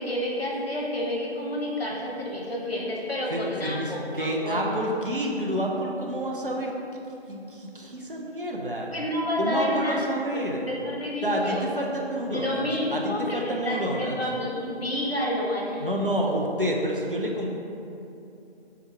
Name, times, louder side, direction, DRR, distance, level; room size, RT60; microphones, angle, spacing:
voice 1, 0.0-4.9 8.9-10.1 10.3-11.7 12.3-15.9, left 1 dB, 65° left, -3 dB, 1.0 m, -29 dB
voice 2, 3.3-6.7 7.3-8.9 9.4-10.6 11.2-14.2 15.8-17.5, equal, 55° right, -1 dB, 0.6 m, -29 dB
Piano, 3.6-6.0, right 3 dB, 35° right, 1.0 m, -44 dB
3.6 x 2.9 x 4.5 m, 2.8 s
figure-of-eight pair, 170°, 33 cm